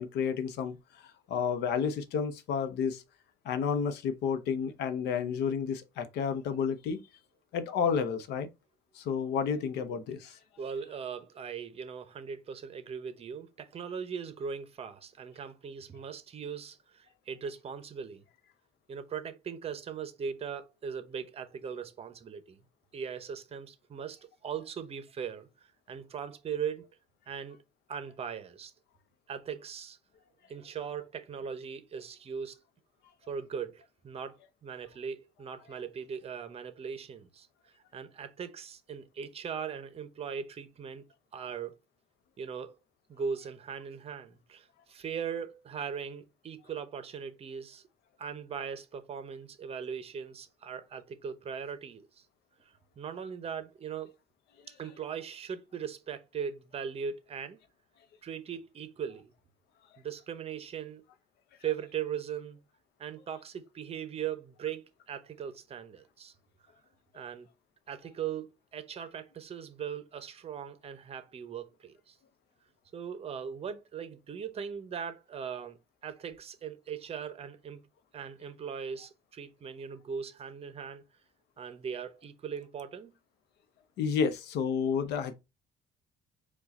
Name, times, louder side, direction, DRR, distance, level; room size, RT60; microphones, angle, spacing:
voice 1, 0.0-3.0 3.4-7.0 7.5-8.5 8.9-10.4 84.0-85.3, left 6 dB, 80° left, 0.7 m, -31 dB
voice 2, 10.6-18.2 18.9-22.6 22.9-25.5 25.9-26.9 27.3-27.6 27.9-28.7 29.3-30.0 30.5-32.6 33.3-37.5 37.9-41.0 41.3-41.8 42.4-42.8 43.1-47.8 48.2-52.1 53.0-54.1 54.7-57.6 58.2-59.3 60.0-61.0 61.6-62.6 63.0-66.3 67.1-67.5 67.9-72.2 72.9-75.8 76.0-77.8 78.1-81.0 81.6-83.1, right 7 dB, 35° right, 0.7 m, -39 dB
4.7 x 2.3 x 4.0 m
cardioid pair, 110°, 17 cm